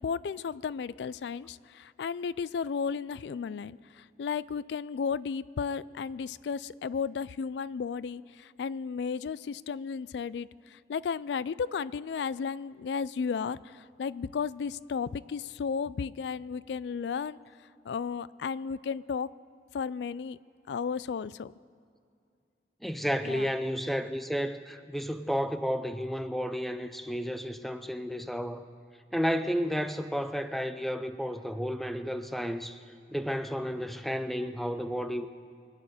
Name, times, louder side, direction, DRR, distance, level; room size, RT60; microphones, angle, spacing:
voice 1, 0.0-17.4 17.8-19.3 19.7-20.4 20.7-21.5 23.2-23.5, left 6 dB, 80° left, 19 dB, 0.3 m, -34 dB
voice 2, 22.8-28.7 29.1-32.8 33.1-35.3, equal, ahead, 10 dB, 0.5 m, -32 dB
24.0 x 9.0 x 6.7 m, 2.3 s
head